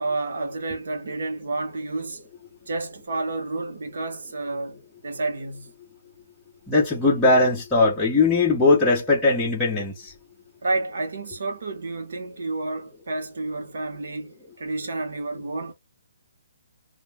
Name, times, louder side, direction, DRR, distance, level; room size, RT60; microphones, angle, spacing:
voice 1, 0.0-2.2 2.7-5.7 10.6-15.7, right 2 dB, 60° right, 1.0 m, -30 dB
voice 2, 6.7-9.9, left 3 dB, 5° left, 0.6 m, -19 dB
2.3 x 2.2 x 3.2 m
hypercardioid pair, 175°, 0 cm